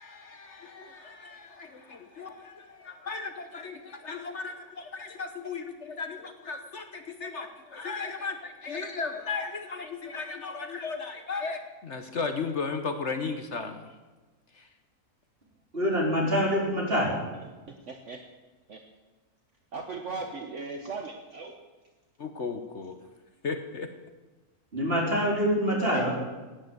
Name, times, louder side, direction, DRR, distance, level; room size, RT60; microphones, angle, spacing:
voice 1, 0.0-13.9 14.5-14.7 22.2-23.0 23.4-23.9, left 4 dB, 50° left, 7 dB, 1.3 m, -36 dB
voice 2, 15.7-17.2 24.7-26.1, equal, 40° right, -2 dB, 4.2 m, -25 dB
voice 3, 17.9-18.2 18.7-18.8 19.7-21.6 25.9-26.1, right 4 dB, 55° right, 4 dB, 1.4 m, -37 dB
16.5 x 9.7 x 7.9 m, 1.2 s
omnidirectional pair, 1.6 m